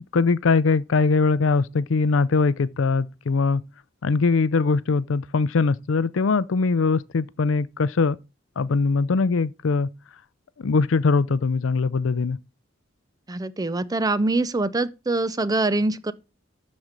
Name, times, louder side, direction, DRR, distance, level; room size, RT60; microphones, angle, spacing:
voice 1, 0.1-3.6 4.0-8.2 8.6-9.9 10.6-12.4, left 4 dB, 70° left, 0.5 m, -21 dB
voice 2, 13.3-16.1, right 2 dB, 20° right, 0.5 m, -24 dB
12.5 x 4.3 x 5.1 m
head